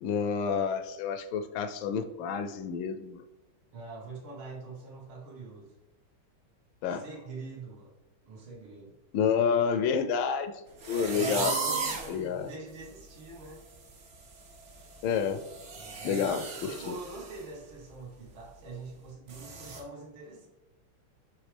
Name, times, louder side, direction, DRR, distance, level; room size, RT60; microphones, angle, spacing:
voice 1, 0.0-3.2 6.8-7.0 9.1-10.5 10.9-11.6 12.1-12.5 15.0-15.5 16.0-17.0, left 6 dB, 75° left, 10 dB, 1.3 m, -29 dB
voice 2, 3.7-5.7 6.9-7.9 8.3-8.9 11.1-13.6 15.8-20.5, right 3 dB, 80° right, -2 dB, 2.2 m, -44 dB
sound 1, 10.8-12.2 12.7-12.8 13.2-13.5 13.7-17.4 17.7-17.9 18.4-18.5 19.3-19.8, right 4 dB, 45° right, 1.0 m, -36 dB
9.4 x 3.4 x 3.3 m, 1.0 s
omnidirectional pair, 2.2 m